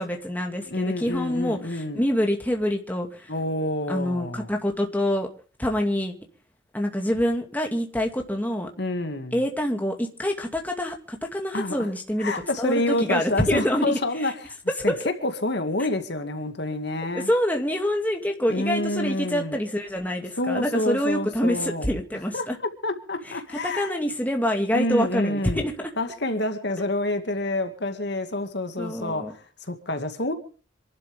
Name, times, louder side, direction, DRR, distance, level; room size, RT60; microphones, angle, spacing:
voice 1, 0.0-3.3 3.9-5.3 5.6-6.1 6.7-8.7 9.3-14.3 14.8-15.0 17.1-22.6 23.2-25.9 28.8-29.3, equal, 10° left, 2.2 m, -26 dB
voice 2, 0.7-2.0 3.3-4.5 8.8-9.4 11.5-11.9 12.2-14.5 14.8-14.9 15.2-17.3 18.5-19.6 20.4-21.9 22.3-24.0 24.7-25.7 26.0-30.3, left 1 dB, 55° left, 2.1 m, -28 dB
27.0 x 12.0 x 3.5 m
head